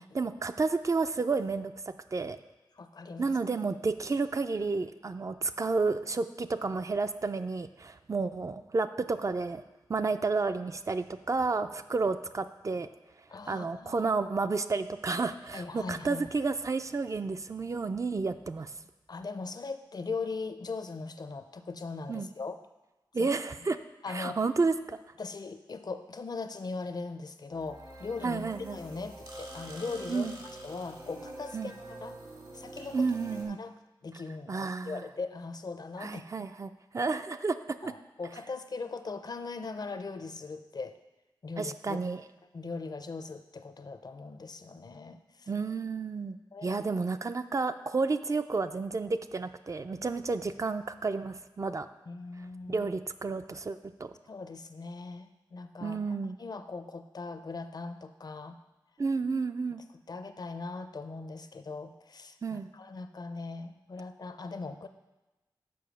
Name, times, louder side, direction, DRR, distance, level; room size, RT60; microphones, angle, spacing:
voice 1, 0.0-1.7 2.1-2.4 3.2-9.6 9.9-12.9 13.5-18.7 22.1-22.3 23.1-23.8 24.1-25.0 28.2-28.8 30.1-30.4 31.5-31.7 32.9-33.6 34.5-35.0 36.0-37.6 37.8-37.9 41.6-42.2 45.5-46.4 46.6-51.9 52.7-54.1 55.8-56.4 59.0-59.8 62.4-62.7, right 4 dB, 40° right, 10 dB, 0.3 m, -31 dB
voice 2, 2.7-3.4 8.2-8.3 13.3-14.1 15.5-16.3 19.1-22.6 23.2-23.3 24.0-24.4 25.2-28.4 28.7-32.2 32.5-33.1 33.3-33.7 34.0-36.2 37.8-41.0 41.4-42.0 42.5-45.5 46.5-46.8 52.1-52.9 54.3-58.6 60.1-64.9, left 4 dB, 55° left, 9 dB, 0.5 m, -40 dB
sound 1, 27.5-33.4, right 1 dB, 60° right, 1.7 m, -45 dB
6.9 x 5.2 x 6.2 m, 1.1 s
wide cardioid pair, 100°, 8 cm